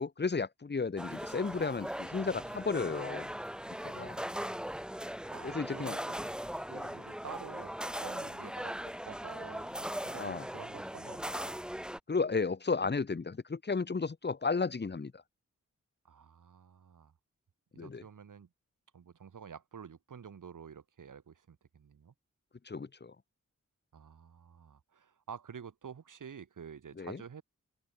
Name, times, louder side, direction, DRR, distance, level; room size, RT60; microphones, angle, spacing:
voice 1, 0.0-3.3 3.8-4.2 5.4-6.0 6.7-7.0 10.2-10.5 12.1-15.2 17.8-18.0 22.6-23.1 27.0-27.2, left 4 dB, 35° left, 1.2 m, -33 dB
sound 1, 1.0-12.0, equal, 5° right, 1.0 m, -39 dB
voice 2, 2.1-2.6 2.9-3.0 3.9-4.4 5.3-6.0 6.7-11.6 16.0-17.1 17.7-18.5 18.9-22.1 23.9-27.4, right 7 dB, 90° right, 3.7 m, -49 dB
open air
wide cardioid pair, 70°, 30 cm